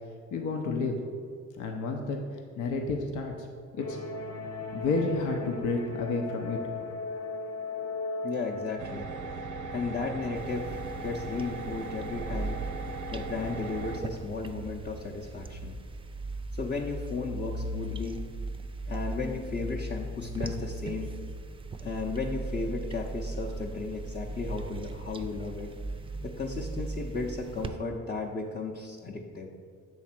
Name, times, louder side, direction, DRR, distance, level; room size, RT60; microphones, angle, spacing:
voice 1, 0.3-1.0 1.6-2.2 2.6-3.5 3.7-4.0 4.7-6.6 6.9-7.0, left 3 dB, 80° left, 3 dB, 0.7 m, -30 dB
sound 1, 3.8-8.8, left 3 dB, 55° left, 1.0 m, -37 dB
voice 2, 8.2-9.1 9.7-12.6 13.1-15.8 16.5-18.2 18.9-21.1 21.8-25.7 26.2-29.5, left 4 dB, 25° left, -2 dB, 0.6 m, -35 dB
sound 2, 8.8-14.0, right 3 dB, 90° right, 0.6 m, -38 dB
sound 3, 10.4-27.7, right 2 dB, 20° right, 0.4 m, -38 dB
7.3 x 3.2 x 5.9 m, 2.1 s
cardioid pair, 90°, 30 cm